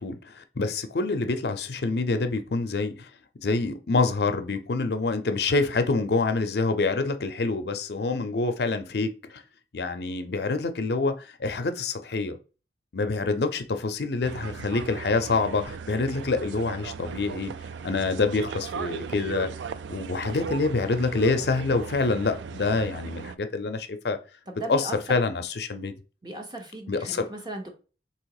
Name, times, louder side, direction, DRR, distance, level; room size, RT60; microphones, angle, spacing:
voice 1, 0.0-3.1 3.4-9.4 9.7-12.4 12.9-17.5 17.8-19.5 19.9-24.2 24.7-25.9 26.9-27.3, left 3 dB, 65° left, 8 dB, 0.5 m, -26 dB
sound 1, 14.2-23.4, right 6 dB, 85° right, 0.3 m, -37 dB
voice 2, 24.5-25.0 26.2-27.7, right 1 dB, 25° right, 3 dB, 0.9 m, -37 dB
3.5 x 2.9 x 4.8 m, 0.34 s
head